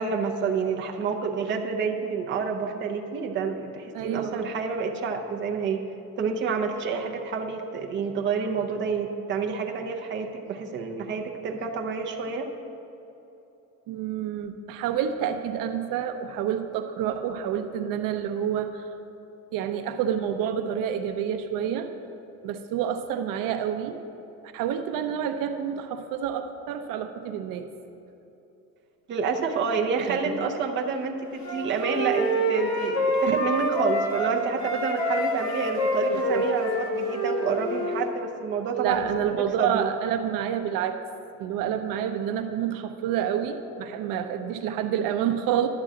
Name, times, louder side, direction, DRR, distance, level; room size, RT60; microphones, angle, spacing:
voice 1, 0.0-5.8 6.2-12.5 29.1-39.9, right 5 dB, 35° right, 2 dB, 0.6 m, -28 dB
voice 2, 3.9-4.5 13.9-18.8 19.5-21.9 22.4-24.0 24.5-27.7 30.0-30.5 33.3-33.4 36.1-36.4 38.7-41.0 41.4-45.7, right 9 dB, 75° right, 8 dB, 0.6 m, -28 dB
Wind instrument woodwind instrument, 31.4-34.3 34.6-38.1, equal, 55° left, 1.5 m, -26 dB
11.5 x 3.8 x 7.6 m, 3.0 s
cardioid pair, 170°, 34 cm